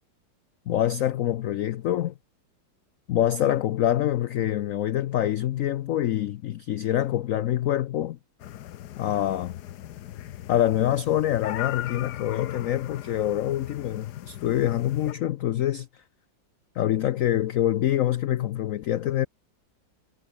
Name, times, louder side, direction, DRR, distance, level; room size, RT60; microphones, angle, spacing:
voice 1, 0.7-2.1 3.1-8.2 9.0-9.6 10.5-16.0 16.8-19.3, left 12 dB, 90° left, 0.7 m, -25 dB
sound 1, 8.4-15.1, left 12 dB, 65° left, 1.3 m, -39 dB
omnidirectional pair, 2.0 m